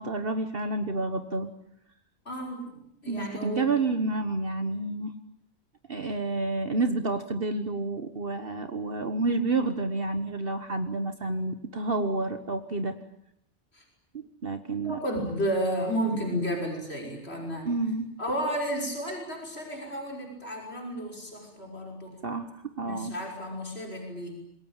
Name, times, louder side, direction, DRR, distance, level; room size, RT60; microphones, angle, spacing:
voice 1, 0.0-1.5 3.1-5.1 5.9-13.0 14.1-15.0 17.6-18.1 22.2-23.2, right 3 dB, 55° right, 9 dB, 1.6 m, -29 dB
voice 2, 2.3-3.7 13.7-13.8 14.8-17.7 18.2-22.2 22.8-24.3, equal, 65° left, 1 dB, 6.3 m, -32 dB
26.5 x 22.5 x 9.0 m, 0.76 s
omnidirectional pair, 1.2 m